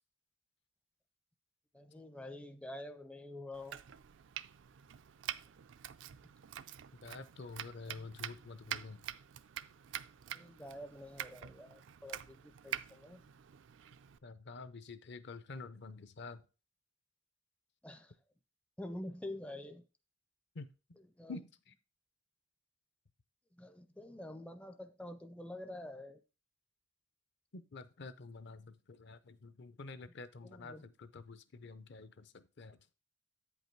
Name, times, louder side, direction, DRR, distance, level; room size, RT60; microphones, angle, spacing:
voice 1, 1.7-3.8 7.8-8.1 10.3-13.3 17.8-18.1 18.8-19.8 21.0-21.4 23.5-26.2 30.4-30.9, left 1 dB, 5° left, 0.4 m, -47 dB
Domestic sounds home sounds, 3.5-14.2, right 10 dB, 60° right, 0.4 m, -46 dB
voice 2, 7.0-9.0 14.2-16.4 20.5-20.7 21.3-21.7 27.5-32.8, left 3 dB, 55° left, 0.6 m, -48 dB
8.4 x 5.4 x 4.5 m
head